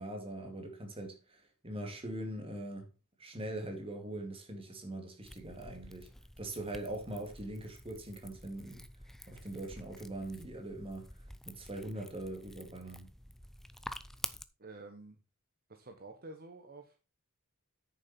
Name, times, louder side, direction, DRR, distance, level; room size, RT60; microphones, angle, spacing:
voice 1, 0.0-2.9 3.2-6.1 6.4-8.8 9.3-11.1 11.5-13.1, right 1 dB, 25° right, 2.3 m, -42 dB
sound 1, 5.2-14.4, left 1 dB, ahead, 0.4 m, -49 dB
voice 2, 14.6-15.2 15.7-17.0, right 2 dB, 40° right, 1.1 m, -50 dB
9.2 x 6.8 x 4.3 m
head